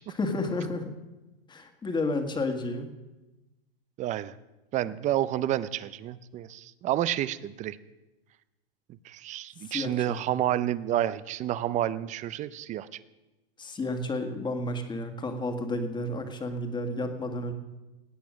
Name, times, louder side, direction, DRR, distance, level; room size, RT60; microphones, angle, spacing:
voice 1, 0.2-0.9 1.5-2.9 9.6-10.2 13.6-17.5, left 2 dB, 15° left, 6 dB, 1.7 m, -31 dB
voice 2, 4.0-4.3 4.7-7.8 9.0-12.9, right 12 dB, 25° right, 16 dB, 0.5 m, -29 dB
18.0 x 8.4 x 6.3 m, 1.1 s
hypercardioid pair, 125°, 30 cm